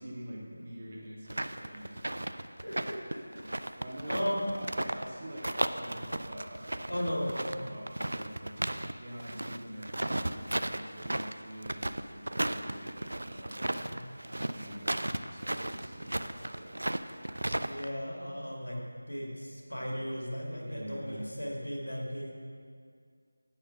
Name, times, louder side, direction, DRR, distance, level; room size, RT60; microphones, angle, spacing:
voice 1, 0.0-2.2 2.6-2.9 3.8-7.1 7.5-8.6 9.0-13.9 14.4-16.9 20.6-21.3, right 1 dB, 40° right, -3 dB, 1.7 m, -46 dB
sound 1, 1.3-5.1 5.4-8.9 9.2-17.9, right 1 dB, 70° right, 0.4 m, -34 dB
voice 2, 2.6-3.7 4.1-4.4 6.9-7.5 13.9-14.0 17.6-22.3, equal, 85° left, -2 dB, 2.3 m, -36 dB
9.2 x 5.5 x 6.0 m, 2.2 s
figure-of-eight pair, 165°, 0 cm